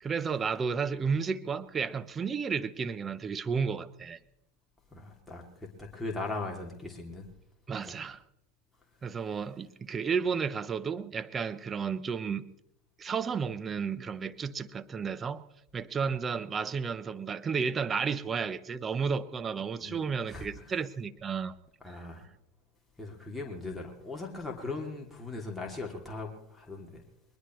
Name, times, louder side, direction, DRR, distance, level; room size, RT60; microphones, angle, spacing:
voice 1, 0.0-4.2 7.7-8.2 9.0-12.4 13.0-15.4 15.7-21.5 21.9-22.0, right 6 dB, 25° right, 0.9 m, -32 dB
voice 2, 4.9-7.3 7.8-8.0 19.8-20.7 21.8-22.3 23.0-27.0, left 3 dB, 5° left, 2.8 m, -39 dB
21.5 x 21.0 x 3.2 m
hypercardioid pair, 95°, 0 cm